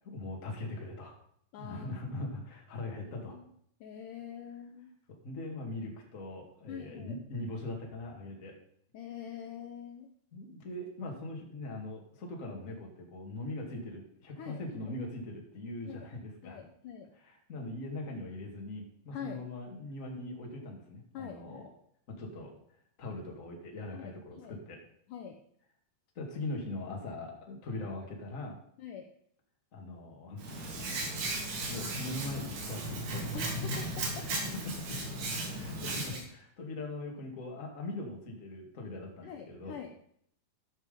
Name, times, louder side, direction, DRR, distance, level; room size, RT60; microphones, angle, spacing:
voice 1, 0.1-1.2 1.6-3.4 5.2-8.6 10.3-16.6 17.1-21.6 22.1-22.5 23.0-24.8 26.2-28.6 29.7-30.4 31.4-33.3 34.2-35.0 35.3-39.8, left 2 dB, 25° left, 0 dB, 1.9 m, -41 dB
voice 2, 1.5-1.9 3.0-3.5 3.8-4.9 6.7-7.2 8.9-10.1 14.4-14.9 15.9-16.1 16.4-17.1 19.1-19.4 21.1-21.7 23.9-24.5 25.1-25.4 28.8-29.1 33.3-34.3 36.1-36.2 39.2-39.9, left 8 dB, 70° left, 4 dB, 2.1 m, -45 dB
Hands, 30.4-36.2, right 2 dB, 80° right, 4.6 m, -36 dB
13.5 x 6.2 x 5.3 m, 0.68 s
omnidirectional pair, 4.4 m